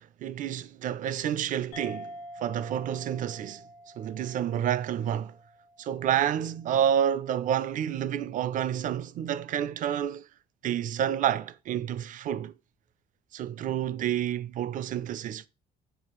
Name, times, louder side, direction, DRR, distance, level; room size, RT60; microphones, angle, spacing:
voice 1, 0.0-3.6 4.0-5.4 5.8-10.3 10.6-12.5 13.3-15.5, right 10 dB, 50° right, 0.4 m, -29 dB
sound 1, 1.7-6.6, equal, 75° left, 1.1 m, -47 dB
6.8 x 2.4 x 3.0 m
cardioid pair, 110°, 17 cm